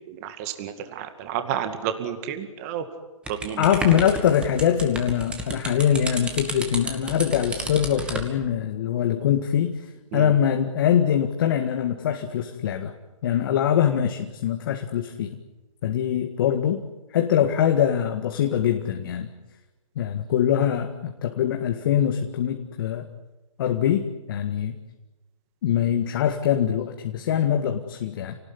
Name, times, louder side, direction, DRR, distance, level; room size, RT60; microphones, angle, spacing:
voice 1, 0.1-2.8 3.3-3.6 10.1-10.3, right 9 dB, 25° right, 8 dB, 2.2 m, -31 dB
sound 1, 3.3-8.3, right 2 dB, 5° right, 2.4 m, -32 dB
voice 2, 3.6-9.8 10.1-12.9 13.2-15.3 15.8-16.8 17.1-19.3 20.0-23.1 23.6-24.7 25.6-28.4, left 9 dB, 35° left, 5 dB, 1.9 m, -23 dB
29.5 x 19.0 x 9.9 m, 1.1 s
hypercardioid pair, 155°, 19 cm